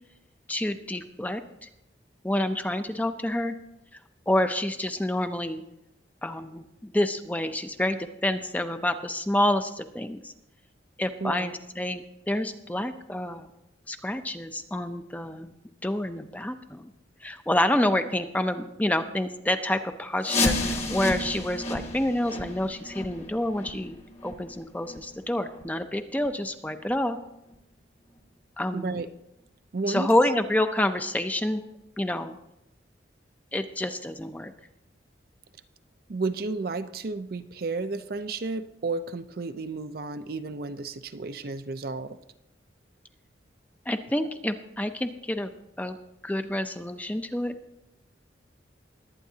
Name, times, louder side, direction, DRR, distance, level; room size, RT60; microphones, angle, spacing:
voice 1, 0.5-1.7 2.2-3.5 4.3-5.6 6.2-10.3 11.0-13.5 13.9-15.5 15.8-16.9 17.2-27.2 28.6-28.9 29.9-31.6 32.0-32.4 33.5-34.5 43.9-45.5 45.8-46.0 46.2-47.5, left 1 dB, 10° left, 8 dB, 0.5 m, -28 dB
voice 2, 11.2-11.6 28.7-29.1 29.7-30.1 36.1-42.2, right 3 dB, 55° right, 10 dB, 0.5 m, -32 dB
sound 1, 20.2-25.8 26.1-26.3 26.8-26.9 27.5-27.6 28.2-28.3, left 2 dB, 35° left, 1.2 m, -31 dB
21.0 x 9.0 x 2.8 m, 0.87 s
head